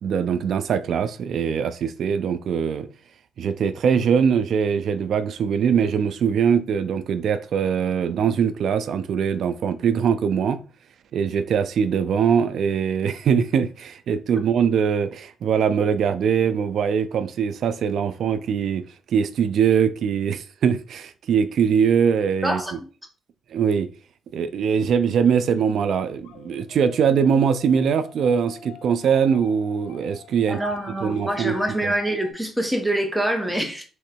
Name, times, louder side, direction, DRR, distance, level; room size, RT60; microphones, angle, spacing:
voice 1, 0.0-2.9 3.4-10.6 11.1-22.8 23.5-23.9 24.3-30.6 31.0-31.6 31.8-31.9, right 7 dB, 65° right, 0.4 m, -22 dB
voice 2, 22.4-22.7 30.5-33.8, right 1 dB, 5° right, 1.1 m, -25 dB
sound 1, 26.2-32.3, left 7 dB, 85° left, 0.7 m, -46 dB
3.7 x 3.1 x 4.5 m
cardioid pair, 90°, 0 cm